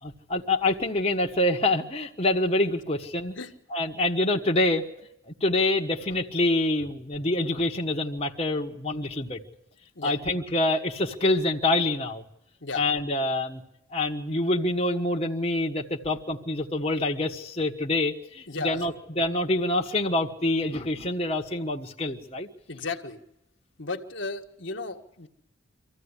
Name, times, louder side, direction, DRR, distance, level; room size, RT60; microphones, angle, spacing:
voice 1, 0.0-3.4 3.7-4.9 5.3-9.4 10.0-12.2 12.7-13.6 13.9-22.5, left 2 dB, 30° left, 0 dB, 1.4 m, -26 dB
voice 2, 18.5-18.8 22.7-23.2 23.8-25.3, left 3 dB, 60° left, 4 dB, 1.8 m, -34 dB
25.5 x 15.0 x 9.9 m, 0.84 s
head